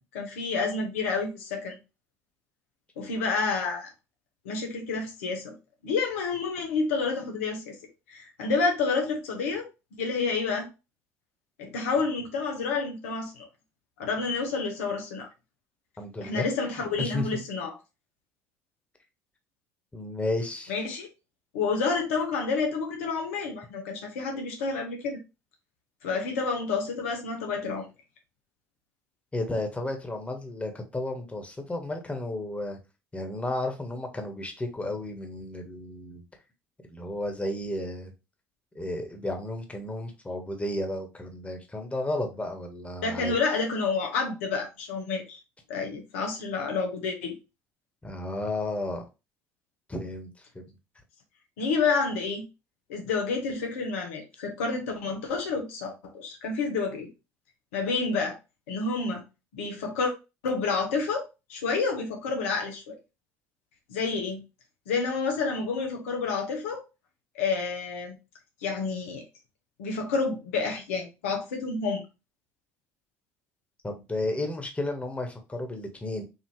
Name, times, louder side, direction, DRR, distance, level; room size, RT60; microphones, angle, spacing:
voice 1, 0.1-1.8 3.0-3.9 4.4-5.5 5.8-7.8 8.1-9.7 10.0-10.7 11.6-13.5 14.0-15.3 16.2-17.8 20.7-21.1 21.5-25.2 26.0-27.9 43.0-45.4 45.7-47.3 51.6-52.4 52.9-57.1 57.7-58.4 58.7-59.2 59.5-60.1 60.4-61.2 61.5-63.0 63.9-64.4 64.9-66.8 67.3-68.2 68.6-69.2 69.8-72.0, left 4 dB, 85° left, 1.1 m, -29 dB
voice 2, 16.0-16.5 16.7-17.3 19.9-20.7 29.3-32.8 33.1-36.2 36.9-38.1 38.7-43.4 48.0-49.0 49.9-50.6 73.8-76.2, left 2 dB, 15° left, 1.4 m, -33 dB
4.8 x 2.8 x 3.2 m
hypercardioid pair, 70°, 7 cm